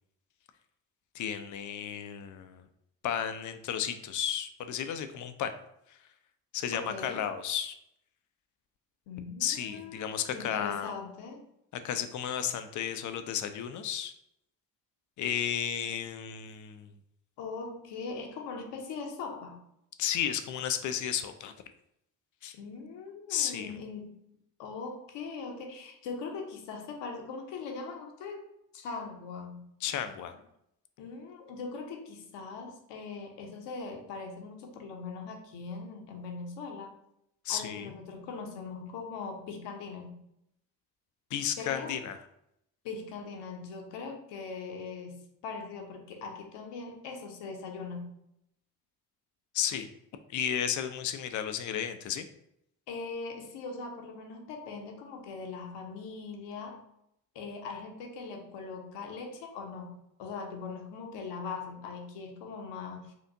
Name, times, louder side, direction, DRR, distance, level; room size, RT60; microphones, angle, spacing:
voice 1, 1.1-2.6 3.0-5.5 5.9-6.0 6.5-7.8 9.4-10.9 11.7-14.1 15.2-16.9 20.0-21.5 22.4-22.6 23.3-23.8 29.8-30.3 37.4-37.9 41.3-42.2 49.5-49.9 50.3-52.3, left 9 dB, 40° left, 9 dB, 0.4 m, -33 dB
voice 2, 6.7-7.3 9.1-11.4 17.4-19.6 22.5-24.2 24.6-28.5 28.7-29.7 31.0-36.9 37.5-40.2 41.6-42.0 42.8-48.1 52.9-56.8 57.3-63.1, left 4 dB, 60° left, 3 dB, 0.8 m, -41 dB
4.5 x 2.5 x 2.6 m, 0.78 s
hypercardioid pair, 45°, 50 cm